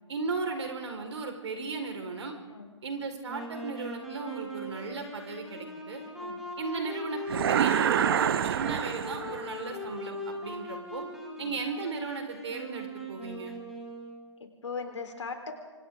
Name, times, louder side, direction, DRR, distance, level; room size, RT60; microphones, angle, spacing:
voice 1, 0.1-2.4 2.8-6.0 6.6-11.0 11.4-13.5, right 4 dB, 65° right, 4 dB, 4.7 m, -36 dB
Wind instrument woodwind instrument, 3.3-14.4, left 1 dB, ahead, 4.5 m, -40 dB
sound 1, 7.3-9.6, right 9 dB, 50° right, 0.8 m, -27 dB
voice 2, 14.4-15.5, left 5 dB, 70° left, 4 dB, 4.1 m, -39 dB
29.0 x 25.0 x 3.8 m, 1.3 s
figure-of-eight pair, 130°, 16 cm